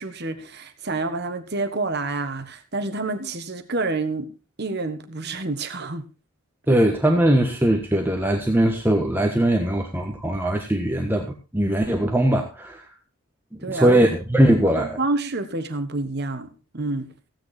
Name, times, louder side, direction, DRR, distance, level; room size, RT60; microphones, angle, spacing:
voice 1, 0.0-4.3 4.6-6.0 6.7-6.8 13.6-14.0 14.8-17.1, right 3 dB, 50° right, 1.3 m, -28 dB
voice 2, 6.7-11.3 11.5-12.8 13.7-15.0, right 1 dB, 10° right, 1.4 m, -20 dB
15.5 x 9.6 x 4.1 m
head